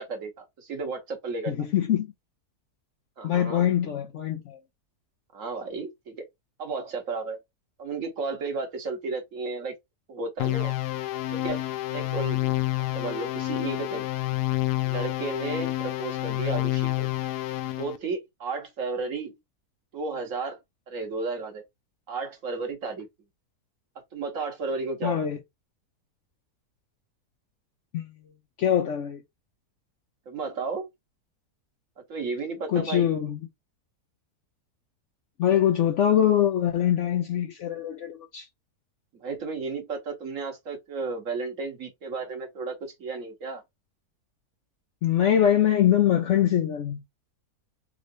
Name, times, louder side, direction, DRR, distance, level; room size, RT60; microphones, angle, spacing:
voice 1, 0.0-1.5 3.2-3.7 5.3-6.2 6.6-7.4 7.8-9.7 10.1-10.7 11.3-11.6 11.9-12.6 12.9-14.1 14.8-17.1 17.8-19.4 19.9-20.6 20.9-21.6 22.1-23.1 24.1-25.2 30.3-30.9 32.1-33.1 39.2-43.6, right 4 dB, 60° right, 1.4 m, -33 dB
voice 2, 1.5-2.1 3.2-4.6 25.0-25.4 27.9-28.1 28.6-29.2 32.7-33.4 35.4-38.5 45.0-47.0, left 10 dB, 65° left, 0.7 m, -23 dB
sound 1, 10.4-18.0, left 17 dB, 85° left, 1.1 m, -28 dB
3.8 x 3.1 x 2.5 m
omnidirectional pair, 1.7 m